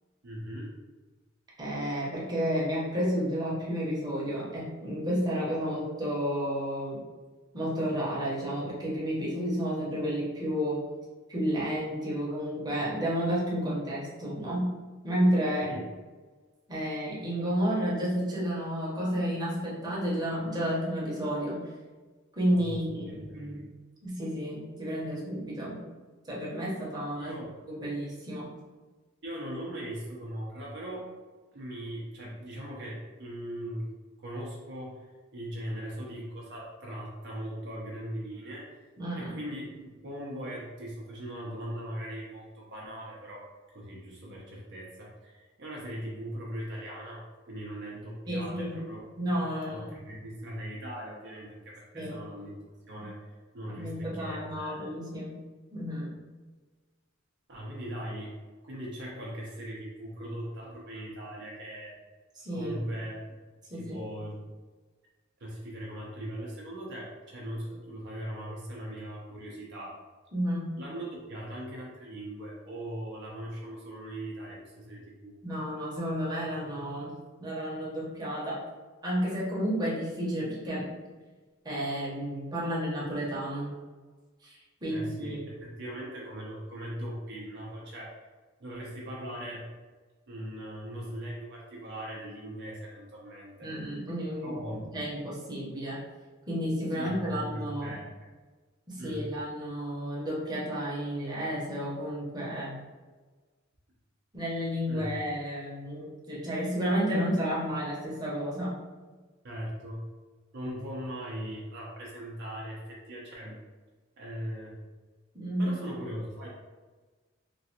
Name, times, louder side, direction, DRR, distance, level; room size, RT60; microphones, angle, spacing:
voice 1, 0.2-0.7 15.6-15.8 22.5-23.6 27.1-27.5 29.2-31.1 31.5-33.9 34.2-38.8 39.2-43.5 43.7-49.0 49.7-52.6 52.9-53.2 53.5-54.9 57.5-58.4 58.6-62.0 62.5-63.3 63.7-64.4 65.4-70.0 70.8-75.4 84.9-88.3 88.6-89.7 90.3-93.7 94.4-94.9 97.0-98.1 99.0-99.3 104.9-105.1 109.4-110.1 110.5-113.6 114.2-114.8 115.6-116.5, equal, 55° right, -4 dB, 0.6 m, -39 dB
voice 2, 1.6-7.0 7.5-10.8 11.3-15.8 16.7-21.6 22.3-22.9 23.2-23.6 24.0-25.8 26.3-27.3 27.7-28.5 39.0-39.4 48.3-48.8 49.2-50.0 51.9-52.2 53.8-55.4 55.7-56.1 62.4-62.7 63.7-64.1 70.3-70.8 75.4-77.1 77.4-78.6 79.0-80.9 81.6-83.7 84.4-85.4 93.6-96.0 96.5-97.9 98.9-102.8 104.3-108.8 115.3-115.8, equal, 20° right, -7 dB, 0.8 m, -31 dB
3.0 x 2.5 x 2.8 m, 1.3 s
head